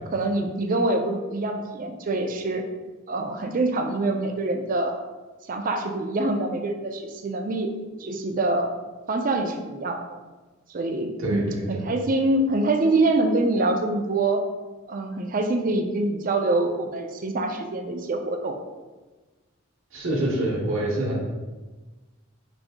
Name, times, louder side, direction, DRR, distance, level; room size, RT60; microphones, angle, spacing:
voice 1, 0.1-2.6 3.1-5.0 5.5-7.7 8.0-8.7 9.1-10.2 10.7-14.4 14.9-18.6, right 2 dB, 40° right, 5 dB, 0.4 m, -25 dB
voice 2, 11.2-11.9 19.9-21.2, right 1 dB, 70° right, -4 dB, 0.9 m, -26 dB
5.1 x 2.7 x 3.5 m, 1.2 s
head